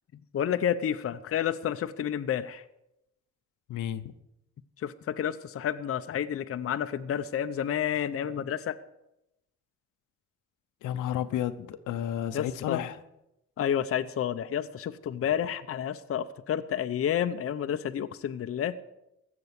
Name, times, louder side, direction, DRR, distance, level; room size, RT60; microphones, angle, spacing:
voice 1, 0.3-2.6 4.8-8.8 12.3-12.8 13.6-18.7, left 9 dB, 50° left, 9 dB, 0.7 m, -30 dB
voice 2, 3.7-4.0 10.8-13.0, left 11 dB, 85° left, 10 dB, 0.9 m, -32 dB
15.5 x 6.9 x 8.2 m, 0.87 s
cardioid pair, 90°, 30 cm